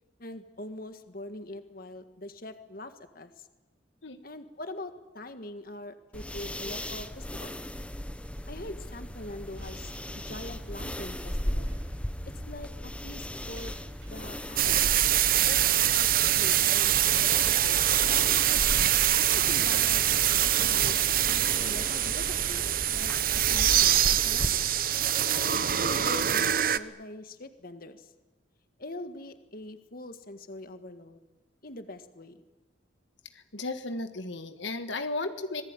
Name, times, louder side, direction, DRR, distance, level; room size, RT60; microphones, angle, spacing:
voice 1, 0.2-3.5 4.2-7.6 8.5-11.8 12.3-13.7 14.1-14.8 15.5-16.9 17.2-18.3 19.2-21.0 21.3-23.1 23.5-24.7 25.3-28.1 28.8-31.2 31.6-32.4, left 1 dB, 50° left, 9 dB, 1.8 m, -43 dB
sound 1, 6.1-24.5, equal, 5° left, 1.1 m, -37 dB
sound 2, 9.6-22.8, equal, 90° right, 5.6 m, -50 dB
sound 3, 14.6-26.8, right 11 dB, 50° right, 0.9 m, -24 dB
voice 2, 33.5-35.6, left 2 dB, 80° left, 8 dB, 1.6 m, -34 dB
26.0 x 20.5 x 9.8 m, 1.0 s
head